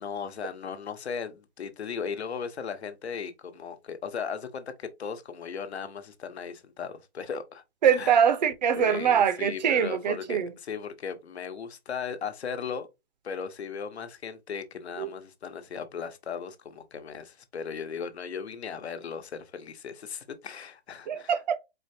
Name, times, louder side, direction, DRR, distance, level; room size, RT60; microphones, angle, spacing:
voice 1, 0.0-7.6 7.9-8.1 8.7-12.9 13.2-21.4, left 6 dB, 80° left, 1.0 m, -37 dB
voice 2, 7.8-10.5 15.0-15.1 21.1-21.6, right 8 dB, 45° right, 0.6 m, -23 dB
4.4 x 3.4 x 2.7 m
hypercardioid pair, 150°, 32 cm